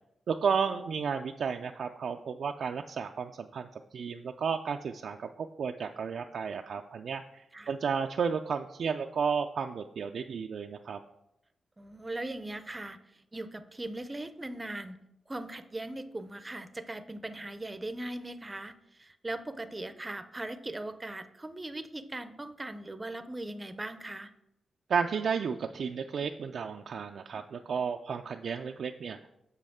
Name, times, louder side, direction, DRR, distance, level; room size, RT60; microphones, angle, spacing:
voice 1, 0.3-3.7 3.9-7.2 7.7-11.0 24.9-29.2, right 6 dB, 70° right, 4 dB, 0.3 m, -32 dB
voice 2, 11.8-15.0 15.3-24.3, right 2 dB, 20° right, 11 dB, 0.5 m, -39 dB
7.6 x 6.3 x 3.6 m, 0.85 s
cardioid pair, 95°, 0 cm